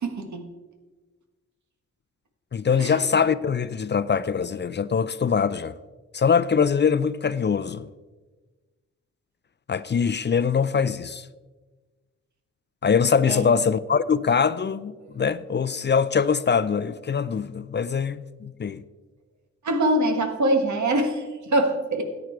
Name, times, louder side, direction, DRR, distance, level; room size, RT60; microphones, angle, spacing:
voice 1, 0.0-0.5 2.8-3.0 13.2-13.5 17.8-17.9 19.6-22.0, right 1 dB, 70° right, 1.8 m, -24 dB
voice 2, 2.5-5.7 6.1-7.9 9.7-11.3 12.8-18.8, left 6 dB, 35° left, 0.4 m, -23 dB
13.0 x 8.9 x 4.6 m
cardioid pair, 70°, 30 cm